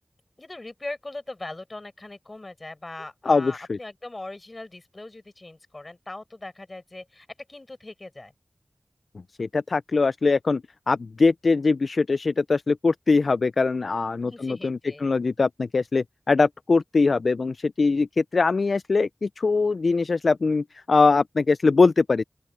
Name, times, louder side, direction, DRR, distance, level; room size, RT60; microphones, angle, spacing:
voice 1, 0.4-8.3 14.2-15.1, left 2 dB, 40° left, 6.1 m, -40 dB
voice 2, 3.3-3.8 9.4-10.6 10.9-22.2, left 4 dB, 80° left, 0.3 m, -22 dB
open air
wide cardioid pair, 65°, 0 cm